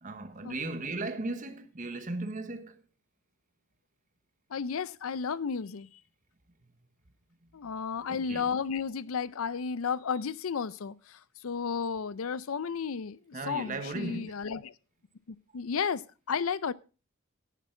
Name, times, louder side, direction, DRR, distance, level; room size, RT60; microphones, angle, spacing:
voice 1, 0.0-2.8 8.1-8.4 13.3-14.3, right 2 dB, 40° right, 1.1 m, -36 dB
voice 2, 4.5-5.9 7.5-11.2 11.4-13.2 13.5-14.7 15.3-16.7, left 6 dB, 85° left, 0.5 m, -33 dB
10.0 x 10.0 x 4.4 m
head